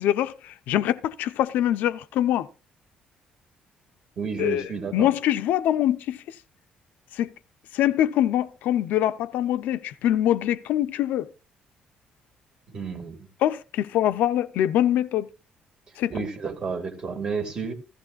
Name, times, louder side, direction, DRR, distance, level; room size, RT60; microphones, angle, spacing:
voice 1, 0.0-2.5 4.4-6.2 7.1-7.3 7.7-11.3 13.4-15.3 16.0-16.1, left 12 dB, 75° left, 0.7 m, -24 dB
voice 2, 4.2-5.1 12.7-13.3 16.1-17.7, right 5 dB, 30° right, 2.1 m, -31 dB
15.5 x 14.5 x 2.4 m
cardioid pair, 180°, 3 cm